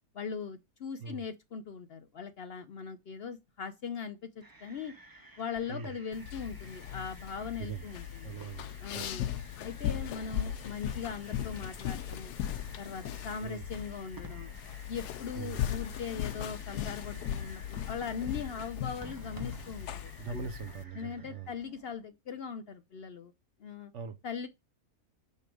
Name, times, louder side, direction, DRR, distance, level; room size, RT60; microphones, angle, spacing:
voice 1, 0.1-4.9 5.4-8.3 8.8-9.3 9.6-12.3 12.8-14.5 14.9-20.5 20.9-23.3 23.6-23.9 24.2-24.5, left 6 dB, 65° left, 0.6 m, -40 dB
sound 1, 4.4-22.1, right 2 dB, 20° right, 0.7 m, -54 dB
sound 2, 6.1-20.8, left 10 dB, 85° left, 1.2 m, -38 dB
voice 2, 8.2-8.6 8.9-9.1 13.4-13.6 15.3-15.6 20.2-21.5 23.9-24.2, right 6 dB, 55° right, 1.0 m, -41 dB
5.6 x 5.1 x 4.7 m
omnidirectional pair, 1.7 m